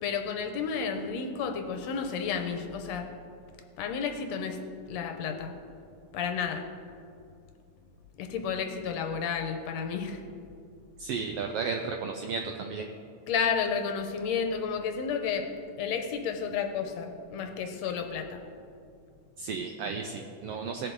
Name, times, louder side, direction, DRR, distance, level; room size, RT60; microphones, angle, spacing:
voice 1, 0.0-3.1 3.8-4.6 4.9-5.6 6.1-6.6 8.2-10.2 13.3-18.4, left 6 dB, 75° left, 5 dB, 1.8 m, -31 dB
voice 2, 11.0-12.9 19.4-20.9, right 5 dB, 90° right, 4 dB, 1.3 m, -33 dB
17.5 x 6.9 x 3.8 m, 2.5 s
omnidirectional pair, 3.3 m